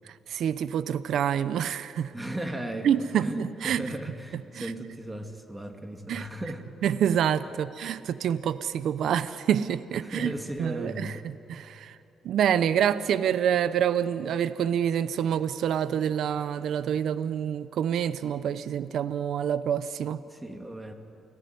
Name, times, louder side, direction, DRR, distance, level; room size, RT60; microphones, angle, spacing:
voice 1, 0.3-2.1 2.8-3.8 4.6-4.7 6.1-6.3 6.8-10.3 10.6-11.1 11.5-12.0 12.2-20.2, right 9 dB, 70° right, 14 dB, 0.8 m, -27 dB
voice 2, 2.1-6.7 7.4-7.5 10.0-11.3 20.3-20.9, right 1 dB, 15° right, 4 dB, 2.8 m, -36 dB
29.0 x 18.0 x 9.5 m, 2.9 s
cardioid pair, 90°, 0 cm